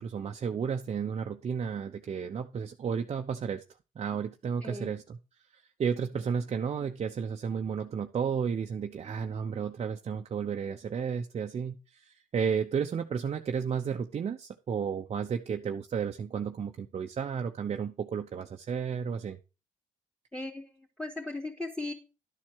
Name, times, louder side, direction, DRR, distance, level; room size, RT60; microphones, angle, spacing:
voice 1, 0.0-3.6 4.0-5.2 5.5-19.4, right 6 dB, 50° right, 4 dB, 0.7 m, -33 dB
voice 2, 20.3-21.9, left 2 dB, 5° left, -4 dB, 2.7 m, -37 dB
11.5 x 4.4 x 6.2 m, 0.31 s
cardioid pair, 70°, 14 cm